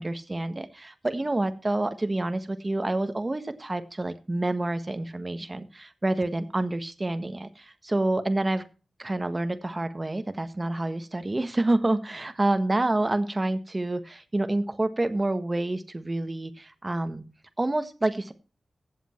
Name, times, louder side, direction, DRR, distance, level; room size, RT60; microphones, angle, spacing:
voice 1, 0.0-8.6 9.0-17.2 17.6-18.3, right 2 dB, 25° right, 10 dB, 1.6 m, -28 dB
15.5 x 8.1 x 4.5 m, 0.35 s
wide cardioid pair, 100°, 0 cm